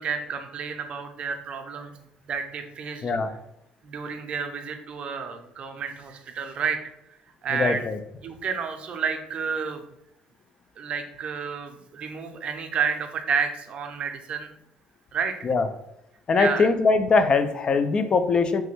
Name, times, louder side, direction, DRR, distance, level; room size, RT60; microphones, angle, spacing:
voice 1, 0.0-1.9 2.3-3.1 3.8-6.8 7.4-7.8 8.2-9.8 10.8-14.5 15.1-15.3 16.4-16.7, right 6 dB, 50° right, 6 dB, 0.5 m, -30 dB
voice 2, 3.0-3.3 7.5-8.0 15.4-15.7 16.3-18.6, left 4 dB, 40° left, 10 dB, 0.3 m, -21 dB
3.2 x 2.1 x 3.1 m, 0.81 s
supercardioid pair, 90°, 2 cm